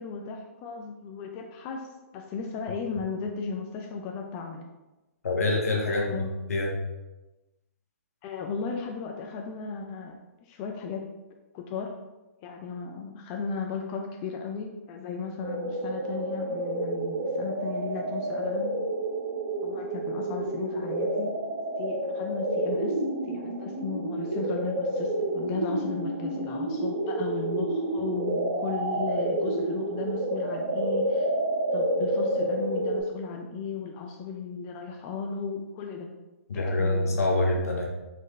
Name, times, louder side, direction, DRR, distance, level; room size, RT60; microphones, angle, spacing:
voice 1, 0.0-4.6 5.9-6.3 8.2-11.0 11.5-11.9 12.4-18.7 19.6-21.3 21.8-23.0 23.3-31.3 31.7-36.1 36.5-37.2, left 5 dB, 30° left, 2 dB, 0.4 m, -35 dB
voice 2, 5.2-6.2 6.5-6.7 36.5-37.9, left 2 dB, 80° left, 1 dB, 1.0 m, -25 dB
sound 1, 15.4-33.0, right 1 dB, 45° right, 1.4 m, -29 dB
4.1 x 3.1 x 3.1 m, 1.1 s
hypercardioid pair, 130°, 8 cm